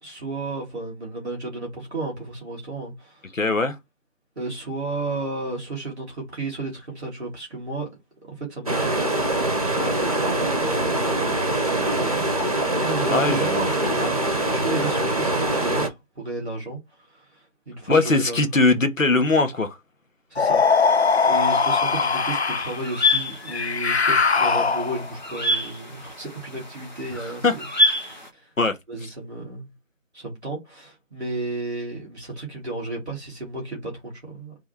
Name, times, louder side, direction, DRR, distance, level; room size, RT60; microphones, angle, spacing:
voice 1, 0.0-3.3 4.3-7.9 8.2-9.3 9.8-11.6 11.9-18.4 20.3-27.6 28.0-28.5 28.9-29.7 30.1-34.5, right 2 dB, 5° left, 1.5 m, -33 dB
voice 2, 3.3-3.8 13.1-13.6 14.0-14.1 17.9-19.8 27.2-27.6 28.6-28.7, left 3 dB, 90° left, 1.4 m, -21 dB
sound 1, 8.7-15.9, right 1 dB, 30° right, 1.1 m, -23 dB
sound 2, 20.4-22.8 23.5-25.1, left 5 dB, 55° left, 0.5 m, -21 dB
sound 3, 22.1-28.3, left 2 dB, 35° left, 1.2 m, -27 dB
3.4 x 3.4 x 4.3 m
figure-of-eight pair, 175°, 38 cm